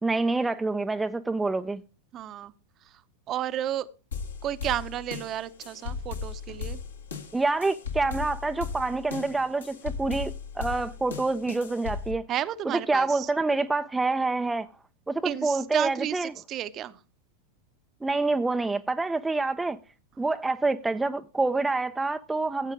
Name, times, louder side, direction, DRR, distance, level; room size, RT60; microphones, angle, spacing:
voice 1, 0.0-1.8 7.3-12.2 12.9-14.7 15.1-16.3 18.0-19.8 20.2-22.7, right 3 dB, 10° right, 0.5 m, -27 dB
voice 2, 2.1-2.5 2.9-3.0 3.3-3.9 4.4-6.8 12.3-13.3 15.2-17.0, right 11 dB, 30° right, 0.8 m, -32 dB
sound 1, 4.1-12.1, left 5 dB, 70° left, 2.0 m, -37 dB
14.5 x 8.2 x 3.6 m
figure-of-eight pair, 90°, 0 cm